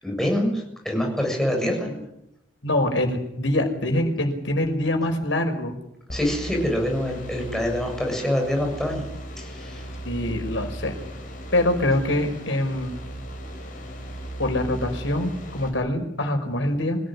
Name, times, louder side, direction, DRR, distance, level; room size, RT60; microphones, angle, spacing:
voice 1, 0.0-1.9 6.1-9.0 9.4-9.9, left 1 dB, ahead, 1 dB, 7.4 m, -25 dB
voice 2, 2.6-5.8 10.1-11.0 11.5-13.0 14.4-17.0, left 1 dB, 80° left, 5 dB, 5.6 m, -24 dB
sound 1, 6.1-15.7, right 1 dB, 45° left, 5.8 m, -37 dB
26.0 x 17.0 x 9.8 m, 0.84 s
head